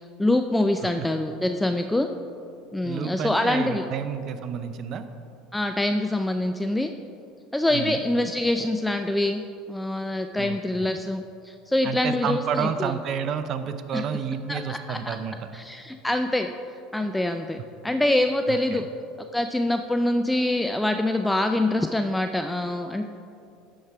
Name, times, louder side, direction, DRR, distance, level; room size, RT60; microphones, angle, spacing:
voice 1, 0.2-2.1 2.7-3.9 5.5-6.9 7.5-9.4 9.7-12.7 13.9-14.0 14.5-15.2 15.5-16.5 16.9-17.6 17.8-18.8 19.3-23.0, left 1 dB, 5° left, 6 dB, 0.4 m, -25 dB
voice 2, 2.8-5.0 7.7-8.0 10.4-10.9 11.8-15.5 18.5-18.8, right 7 dB, 50° right, 10 dB, 0.5 m, -30 dB
11.5 x 4.7 x 4.7 m, 2.6 s
hypercardioid pair, 80°, 0 cm